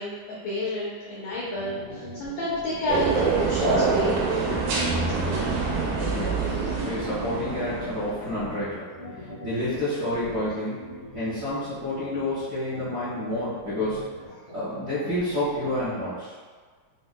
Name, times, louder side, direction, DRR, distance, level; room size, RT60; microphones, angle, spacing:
voice 1, 0.0-4.1 5.0-5.5 5.9-6.2, left 1 dB, 85° left, -6 dB, 1.4 m, -31 dB
sound 1, 1.3-16.0, equal, 50° left, 0.9 m, -42 dB
sound 2, 2.9-8.3, right 4 dB, 90° right, 2.3 m, -25 dB
voice 2, 6.1-8.9 9.4-10.8 11.1-14.0 14.5-16.3, left 1 dB, 65° right, -14 dB, 0.9 m, -29 dB
6.2 x 2.1 x 2.2 m, 1.5 s
omnidirectional pair, 3.6 m